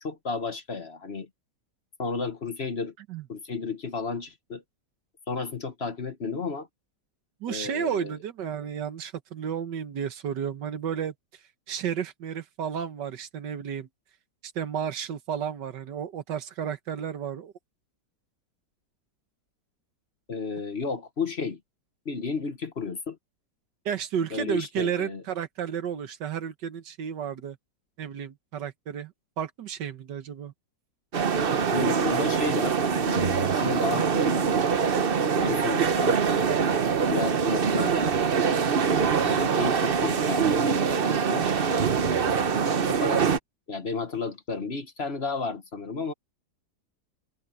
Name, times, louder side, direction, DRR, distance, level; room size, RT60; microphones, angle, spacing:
voice 1, 0.0-1.3 2.0-2.9 3.3-4.6 5.3-6.7 7.5-8.2 20.3-21.6 22.0-23.2 24.3-25.2 31.7-34.5 35.4-36.2 36.5-38.2 39.2-41.4 42.9-43.4 43.7-46.1, left 4 dB, 40° left, 1.4 m, -33 dB
voice 2, 7.4-11.1 11.7-13.9 14.4-17.5 23.9-27.6 28.0-30.5, right 8 dB, 85° right, 1.8 m, -32 dB
sound 1, 31.1-43.4, right 6 dB, 40° right, 0.9 m, -24 dB
omnidirectional pair, 1.8 m